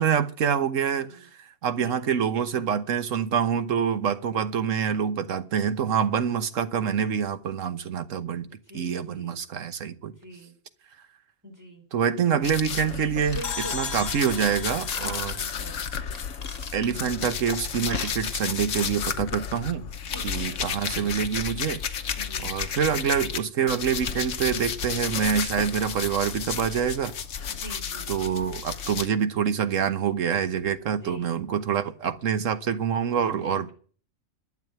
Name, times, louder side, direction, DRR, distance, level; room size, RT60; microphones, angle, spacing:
voice 1, 0.0-8.5 8.7-10.1 11.9-15.3 16.7-19.9 20.2-21.8 22.4-27.1 28.1-33.7, right 7 dB, 75° right, 1.4 m, -26 dB
voice 2, 8.5-9.4 10.0-10.5 11.4-11.8 12.3-12.4 13.2-14.0 14.9-15.8 20.1-20.8 22.2-22.5 27.6-28.1 31.0-31.3 33.5-33.7, equal, 15° right, 4.0 m, -43 dB
sound 1, 12.4-23.4 23.7-29.1, left 7 dB, 70° left, 1.3 m, -32 dB
Ratchet pawl / Tools, 13.3-14.2 14.9-15.3 16.1-17.1 17.7-18.1 18.4-18.6 19.1-19.2, left 3 dB, 30° left, 1.5 m, -39 dB
sound 2, 13.4-16.7, left 6 dB, 85° left, 1.7 m, -38 dB
12.0 x 7.5 x 9.2 m
omnidirectional pair, 1.4 m